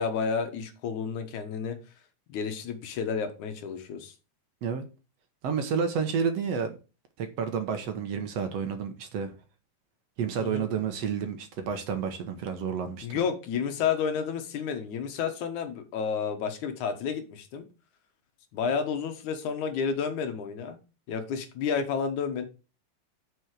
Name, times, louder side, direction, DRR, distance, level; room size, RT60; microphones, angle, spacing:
voice 1, 0.0-1.8 2.3-4.1 10.4-10.7 13.0-17.6 18.5-20.8 21.1-22.5, left 6 dB, 80° left, 2.8 m, -31 dB
voice 2, 5.4-6.7 7.2-9.3 10.2-13.2, right 6 dB, 65° right, 2.0 m, -30 dB
6.3 x 6.1 x 6.4 m
omnidirectional pair, 3.4 m